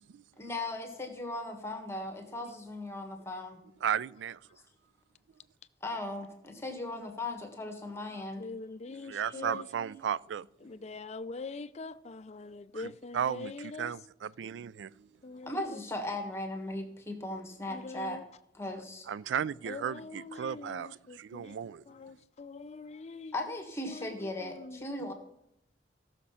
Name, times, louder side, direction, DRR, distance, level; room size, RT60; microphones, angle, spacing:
voice 1, 0.4-3.6 5.8-8.5 15.4-18.2 18.5-19.1 23.3-25.1, left 2 dB, 15° left, 1.5 m, -37 dB
voice 2, 3.8-4.4 9.0-10.5 12.7-15.1 19.1-21.8, right 8 dB, 85° right, 0.3 m, -35 dB
voice 3, 8.1-9.7 10.6-13.9 15.2-15.8 17.7-18.2 19.7-21.6 21.9-23.3 23.9-24.8, left 3 dB, 40° left, 0.5 m, -43 dB
16.0 x 6.5 x 5.7 m
head